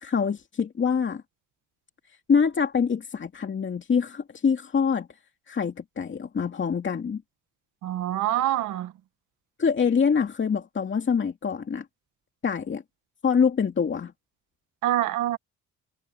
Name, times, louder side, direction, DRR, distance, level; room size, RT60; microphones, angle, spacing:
voice 1, 0.0-1.2 2.3-5.1 5.5-7.2 9.6-11.8 12.4-12.8 13.2-14.1, left 6 dB, 40° left, 2.5 m, -25 dB
voice 2, 7.8-8.9 14.8-15.4, right 13 dB, 90° right, 1.9 m, -25 dB
cardioid pair, 90°, 30 cm